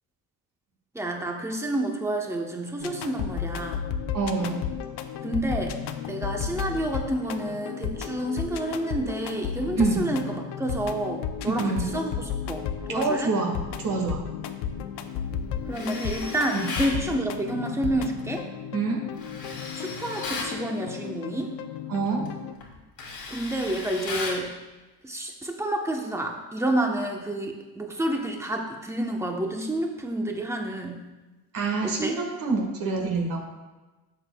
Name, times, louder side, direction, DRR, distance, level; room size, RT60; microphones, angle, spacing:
voice 1, 0.9-3.9 5.2-5.8 6.1-13.3 15.7-18.5 19.8-21.5 23.3-24.5 25.0-31.0 31.8-32.1, right 1 dB, 5° right, 2 dB, 1.0 m, -29 dB
sound 1, 2.8-22.5, left 8 dB, 85° left, 0.7 m, -34 dB
voice 2, 4.1-4.6 9.8-10.0 11.4-11.9 12.9-14.2 16.5-16.7 18.7-19.0 21.9-22.3 31.5-33.4, right 4 dB, 55° right, -1 dB, 1.7 m, -26 dB
Tools, 15.7-17.0 19.2-20.6 22.1-22.3 22.6-24.5, left 3 dB, 60° left, 2.2 m, -35 dB
11.5 x 7.4 x 2.3 m, 1.2 s
cardioid pair, 120°, 39 cm